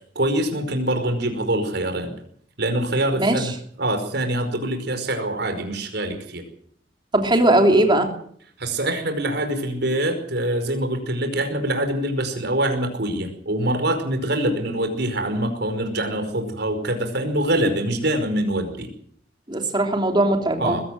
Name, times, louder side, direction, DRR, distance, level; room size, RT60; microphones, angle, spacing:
voice 1, 0.1-2.1 2.6-3.5 3.8-6.4 8.6-18.9 20.6-20.8, right 1 dB, 60° right, 6 dB, 5.1 m, -24 dB
voice 2, 3.2-3.5 7.1-8.1 19.5-20.8, right 1 dB, 25° right, 4 dB, 3.3 m, -19 dB
21.0 x 16.5 x 7.8 m, 0.63 s
head